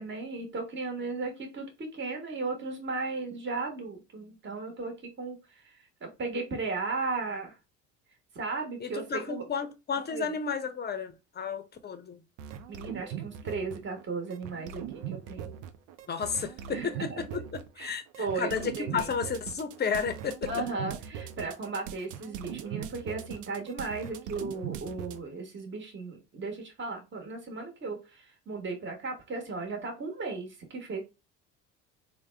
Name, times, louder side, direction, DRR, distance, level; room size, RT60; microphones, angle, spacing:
voice 1, 0.0-7.5 8.3-9.4 10.1-10.3 12.7-15.5 16.7-17.2 17.8-19.1 20.5-31.0, right 3 dB, 30° right, 1.3 m, -36 dB
voice 2, 8.8-12.2 16.1-20.5, left 6 dB, 25° left, 0.6 m, -33 dB
sound 1, 12.4-14.0 14.3-25.2, right 9 dB, 80° right, 0.5 m, -40 dB
3.4 x 2.1 x 3.3 m
hypercardioid pair, 70°, 37 cm